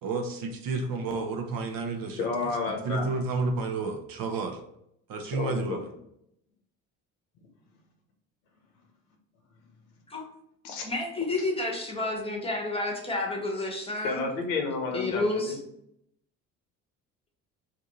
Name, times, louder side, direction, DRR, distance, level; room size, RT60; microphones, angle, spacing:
voice 1, 0.0-2.5 2.8-4.6 5.1-5.9, right 3 dB, 55° right, 5 dB, 0.7 m, -31 dB
voice 2, 2.2-3.1 5.4-5.8 10.6-10.8 14.0-15.6, left 4 dB, 90° left, 2 dB, 0.8 m, -31 dB
voice 3, 10.8-14.2 14.9-15.6, left 2 dB, 15° left, 1 dB, 1.0 m, -30 dB
2.6 x 2.5 x 4.0 m, 0.77 s
hypercardioid pair, 65°, 41 cm